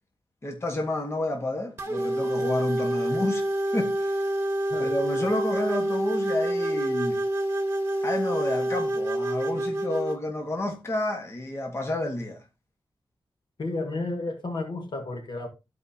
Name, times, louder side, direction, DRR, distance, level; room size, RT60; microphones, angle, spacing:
voice 1, 0.4-3.4 3.7-4.3 4.8-7.2 8.0-12.4, left 1 dB, 35° left, 1.5 m, -30 dB
sound 1, 1.8-10.2, right 1 dB, 30° right, 1.2 m, -27 dB
voice 2, 13.6-15.5, left 2 dB, 65° left, 1.7 m, -32 dB
13.5 x 4.8 x 2.8 m
wide cardioid pair, 135°, 8 cm